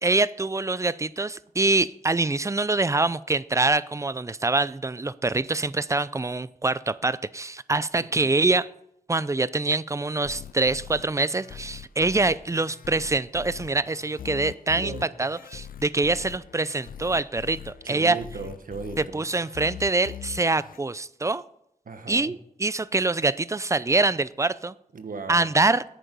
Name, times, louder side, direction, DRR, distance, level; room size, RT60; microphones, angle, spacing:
voice 1, 0.0-8.7 9.1-14.9 15.2-18.2 19.0-21.4 22.1-24.7 25.3-25.8, right 3 dB, 20° right, 17 dB, 0.5 m, -25 dB
sound 1, 10.2-20.8, left 9 dB, 85° left, 0.5 m, -42 dB
voice 2, 14.7-15.1 17.8-19.2 21.9-22.3 24.9-25.5, right 4 dB, 75° right, 8 dB, 1.3 m, -37 dB
10.5 x 8.8 x 5.4 m, 0.75 s
wide cardioid pair, 75°, 14 cm